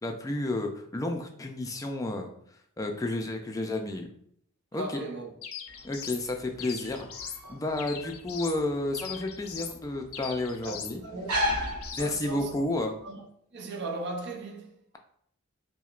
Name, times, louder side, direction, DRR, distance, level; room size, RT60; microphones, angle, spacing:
voice 1, 0.0-2.3 2.8-4.1 4.7-4.8 5.8-11.0 12.0-12.9, left 2 dB, 15° left, 0.3 m, -31 dB
voice 2, 4.7-5.3 7.7-7.9 10.6-11.5 11.9-12.6 13.0-13.3 13.5-14.8, right 2 dB, 50° right, 0.6 m, -38 dB
sound 1, 5.4-6.2 6.6-7.4 7.8-8.6 8.9-9.8 10.1-11.0 11.3-12.1, left 7 dB, 70° left, 0.5 m, -40 dB
sound 2, 5.7-12.6, equal, 90° right, 0.8 m, -36 dB
sound 3, 7.7-12.9, right 1 dB, ahead, 0.9 m, -55 dB
5.8 x 2.1 x 2.4 m
head